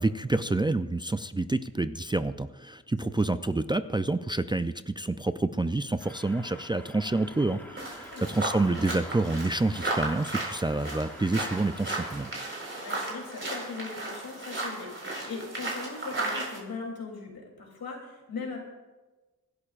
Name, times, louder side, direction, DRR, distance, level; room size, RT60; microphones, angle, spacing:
voice 1, 0.0-12.3, right 2 dB, 15° right, 11 dB, 0.4 m, -28 dB
voice 2, 3.0-3.3 8.1-8.3 12.7-18.6, left 4 dB, 80° left, 0 dB, 3.1 m, -39 dB
sound 1, 6.0-12.3, equal, 5° left, 2.3 m, -48 dB
sound 2, 7.8-16.6, right 2 dB, 35° right, 4.4 m, -35 dB
25.0 x 11.5 x 2.5 m, 1.2 s
cardioid pair, 75°, 35 cm